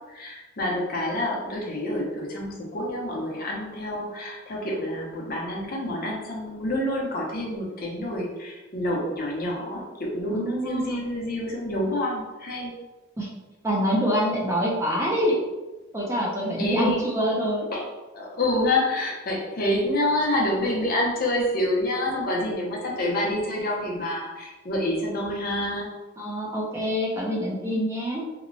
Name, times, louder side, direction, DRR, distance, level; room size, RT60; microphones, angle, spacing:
voice 1, 0.0-12.7 16.6-17.1 17.7-17.8 18.1-25.9, left 1 dB, 45° left, -2 dB, 0.6 m, -27 dB
voice 2, 10.3-11.0 13.2-13.3 13.6-15.4 15.9-17.7 26.2-28.2, equal, 15° right, -3 dB, 0.4 m, -26 dB
2.8 x 2.1 x 2.5 m, 1.1 s
head